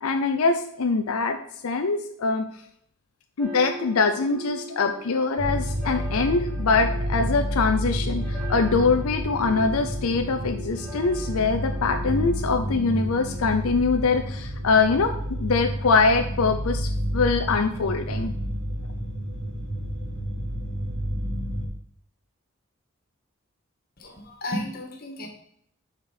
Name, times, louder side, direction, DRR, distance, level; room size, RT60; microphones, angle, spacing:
voice 1, 0.0-1.4 1.6-2.5 3.4-15.1 15.4-18.3, left 4 dB, 85° left, 6 dB, 0.6 m, -23 dB
sound 1, 3.4-13.4, right 1 dB, 5° left, 2.1 m, -40 dB
sound 2, 5.4-21.7, equal, 50° right, 2.1 m, -30 dB
voice 2, 24.0-25.3, left 1 dB, 45° left, 2 dB, 1.5 m, -33 dB
6.8 x 4.5 x 4.9 m, 0.68 s
head